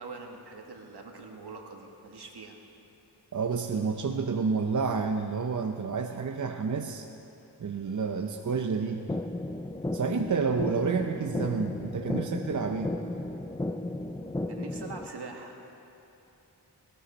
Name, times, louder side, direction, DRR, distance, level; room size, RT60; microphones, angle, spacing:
voice 1, 0.0-2.6 14.5-15.6, right 3 dB, 70° right, 2 dB, 1.7 m, -43 dB
voice 2, 3.3-7.1 7.6-9.1 9.9-12.9, right 5 dB, 45° right, 5 dB, 0.7 m, -29 dB
sound 1, 9.1-15.1, left 1 dB, 10° left, 0.4 m, -34 dB
18.0 x 18.0 x 4.3 m, 2.9 s
wide cardioid pair, 95°, 40 cm